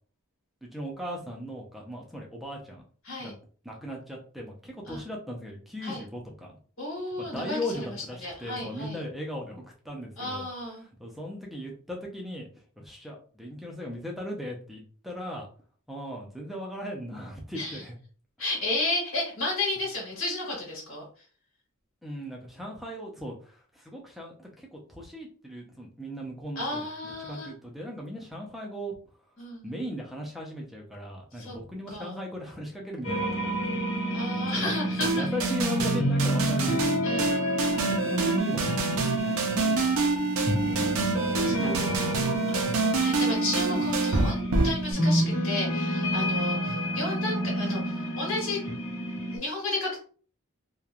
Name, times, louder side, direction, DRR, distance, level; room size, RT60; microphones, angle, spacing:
voice 1, 0.6-2.8 3.2-3.3 3.6-6.5 7.2-10.5 11.0-12.5 12.8-15.5 15.9-17.9 22.0-28.9 29.6-33.8 34.5-34.7 35.0-37.0 37.7-40.2 40.6-40.8 41.3-42.2 46.7-46.9, equal, ahead, -1 dB, 0.5 m, -38 dB
voice 2, 6.8-9.0 10.2-10.9 17.5-17.8 18.4-21.0 26.5-27.5 29.4-29.7 31.4-31.6 31.9-32.1 34.1-35.3 37.0-37.8 40.7-42.2 42.5-48.6 49.3-50.0, left 2 dB, 75° left, -3 dB, 1.5 m, -33 dB
sound 1, 33.0-49.4, equal, 60° left, 1.2 m, -29 dB
sound 2, 35.0-44.9, right 3 dB, 80° right, 0.5 m, -27 dB
3.0 x 2.2 x 2.4 m, 0.42 s
head